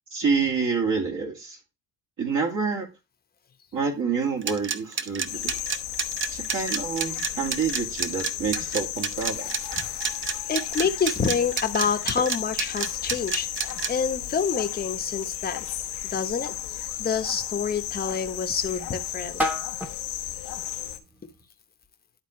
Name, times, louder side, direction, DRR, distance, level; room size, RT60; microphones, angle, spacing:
voice 1, 0.1-1.6 2.2-2.9 3.7-5.5 6.3-9.5 10.3-10.4, right 5 dB, 50° right, 2.3 m, -27 dB
sound 1, 4.4-13.9, right 6 dB, 30° right, 0.7 m, -29 dB
sound 2, 5.3-21.0, left 12 dB, 75° left, 1.0 m, -34 dB
voice 2, 10.5-15.6 16.1-19.4, left 6 dB, 25° left, 1.0 m, -28 dB
sound 3, 10.8-21.5, left 1 dB, 5° right, 1.2 m, -39 dB
11.5 x 3.8 x 3.1 m
cardioid pair, 95°, 40 cm